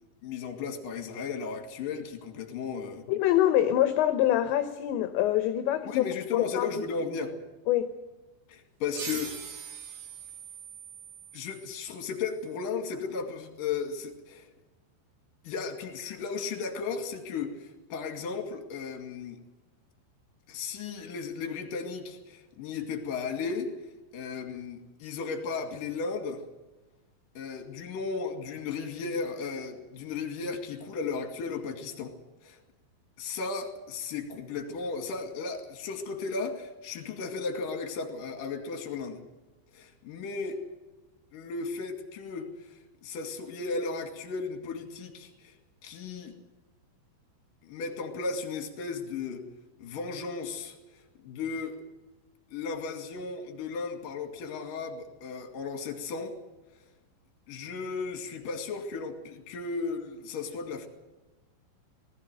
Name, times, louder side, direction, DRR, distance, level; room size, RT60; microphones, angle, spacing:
voice 1, 0.2-3.1 5.9-7.4 8.5-9.3 11.3-14.5 15.4-19.4 20.5-23.7 24.1-26.4 27.4-32.2 32.4-32.6 33.2-39.2 39.7-40.6 41.3-45.6 45.8-46.3 47.6-49.5 49.8-50.8 51.2-51.8 52.5-56.4 57.5-60.9, left 5 dB, 50° left, 3.5 m, -35 dB
voice 2, 3.1-6.0 6.3-6.7 7.7-7.9, left 12 dB, 75° left, 2.9 m, -25 dB
sound 1, 8.9-12.2, right 6 dB, 65° right, 5.3 m, -42 dB
19.5 x 15.5 x 9.1 m
omnidirectional pair, 5.8 m